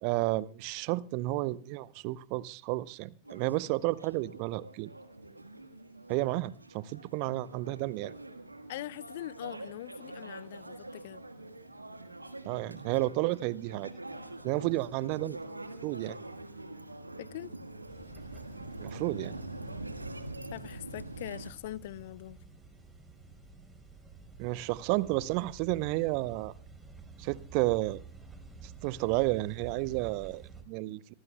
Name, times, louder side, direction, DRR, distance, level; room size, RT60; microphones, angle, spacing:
voice 1, 0.0-4.9 6.1-8.1 12.4-13.9 14.4-15.4 15.8-16.2 18.8-19.4 24.4-26.5 27.2-28.0 28.8-31.1, right 19 dB, 45° right, 0.8 m, -31 dB
sound 1, 3.3-21.5, right 2 dB, 85° right, 1.5 m, -45 dB
voice 2, 8.7-11.2 17.2-17.5 20.5-22.4, left 14 dB, 55° left, 0.7 m, -42 dB
sound 2, 17.9-30.6, right 4 dB, 10° right, 4.2 m, -51 dB
25.5 x 19.0 x 2.3 m
figure-of-eight pair, 90°, 0 cm